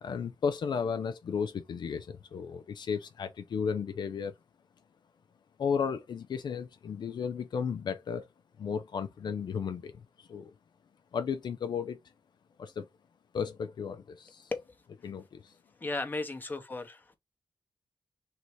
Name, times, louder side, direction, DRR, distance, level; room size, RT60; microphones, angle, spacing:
voice 1, 0.0-4.3 5.6-8.3 8.6-10.5 11.1-12.0 12.6-12.9 13.3-14.5 15.0-15.5, left 6 dB, 70° left, 0.4 m, -34 dB
voice 2, 15.8-17.2, left 3 dB, 25° left, 0.8 m, -35 dB
3.2 x 2.7 x 4.5 m
cardioid pair, 90°, 8 cm